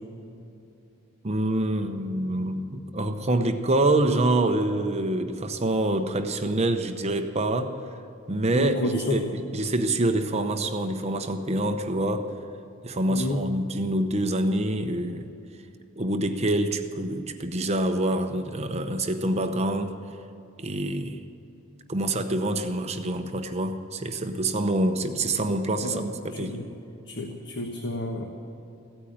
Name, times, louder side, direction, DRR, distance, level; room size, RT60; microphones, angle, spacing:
voice 1, 1.2-7.8 8.3-12.3 12.8-15.3 16.0-19.9 20.6-21.2 21.9-26.6, right 1 dB, 30° right, 7 dB, 0.8 m, -26 dB
voice 2, 8.5-9.2 13.1-13.4 25.8-26.1 26.4-26.6 27.1-28.2, left 1 dB, 60° left, 2 dB, 1.3 m, -30 dB
16.0 x 9.0 x 8.7 m, 2.7 s
head